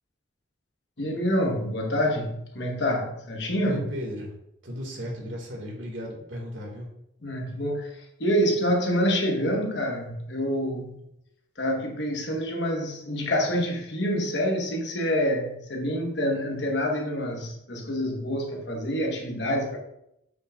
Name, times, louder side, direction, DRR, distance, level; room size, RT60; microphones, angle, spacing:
voice 1, 1.0-3.9 7.2-11.0 11.6-19.8, equal, 60° left, 1 dB, 1.2 m, -27 dB
voice 2, 3.6-4.3 4.6-6.9, equal, 75° right, -1 dB, 1.9 m, -35 dB
7.9 x 5.8 x 2.4 m, 0.80 s
head